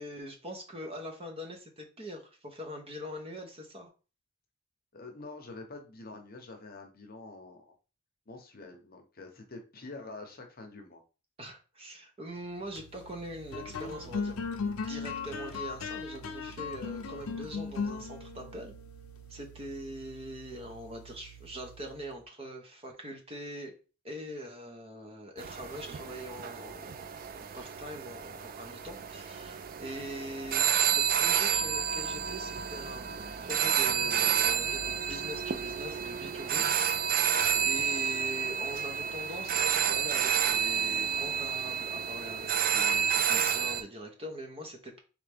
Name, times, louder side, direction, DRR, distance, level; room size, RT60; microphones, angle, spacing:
voice 1, 0.0-3.9 11.4-14.4 14.9-18.7 19.3-23.7 24.0-36.7 37.1-45.0, equal, 25° right, 3 dB, 0.8 m, -43 dB
voice 2, 4.9-7.7 8.3-11.0 37.3-37.7, left 3 dB, 45° left, 4 dB, 0.8 m, -46 dB
sound 1, 12.5-22.1, left 4 dB, 80° left, 0.6 m, -39 dB
sound 2, 25.4-43.8, right 8 dB, 40° right, 0.3 m, -30 dB
3.8 x 3.3 x 3.4 m, 0.33 s
head